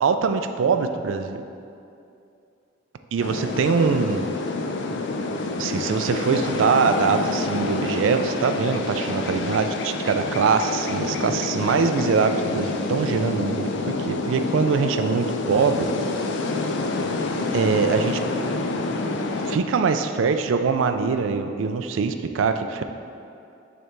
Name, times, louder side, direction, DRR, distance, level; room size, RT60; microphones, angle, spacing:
voice 1, 0.0-1.4 3.1-4.2 5.6-15.9 17.5-18.2 19.5-22.8, right 5 dB, 85° right, 8 dB, 0.4 m, -23 dB
sound 1, 3.2-19.6, left 3 dB, 65° left, 0.4 m, -27 dB
6.4 x 3.3 x 4.5 m, 2.6 s
head